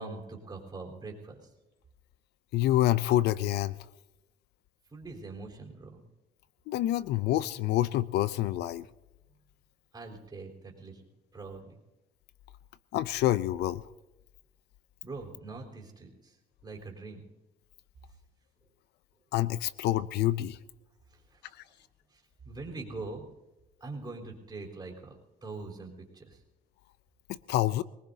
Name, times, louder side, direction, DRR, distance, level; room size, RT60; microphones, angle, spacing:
voice 1, 0.0-1.4 4.9-6.0 9.9-11.0 11.3-11.7 15.0-16.3 16.6-17.2 21.3-21.4 22.4-23.3 23.8-25.2 25.4-26.4, right 3 dB, 25° right, 0 dB, 3.9 m, -42 dB
voice 2, 2.5-3.7 6.7-8.9 12.9-13.8 19.3-20.6 27.5-27.8, left 14 dB, 75° left, 18 dB, 0.5 m, -27 dB
24.0 x 19.0 x 2.8 m, 0.99 s
cardioid pair, 110°, 17 cm